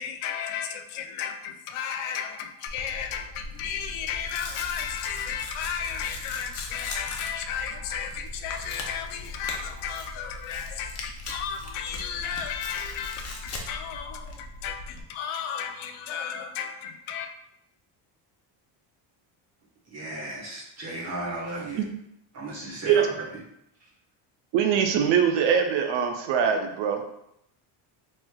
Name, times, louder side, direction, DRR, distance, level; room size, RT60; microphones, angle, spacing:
voice 1, 0.0-17.3, left 8 dB, 75° left, 6 dB, 0.6 m, -34 dB
Tearing, 2.7-15.0, left 2 dB, 35° left, 0.5 m, -39 dB
voice 2, 19.9-21.8 22.3-23.0, right 2 dB, 30° right, -4 dB, 1.1 m, -35 dB
voice 3, 24.5-27.0, right 7 dB, 65° right, 5 dB, 0.5 m, -22 dB
3.1 x 3.1 x 2.2 m, 0.77 s
cardioid pair, 135°, 49 cm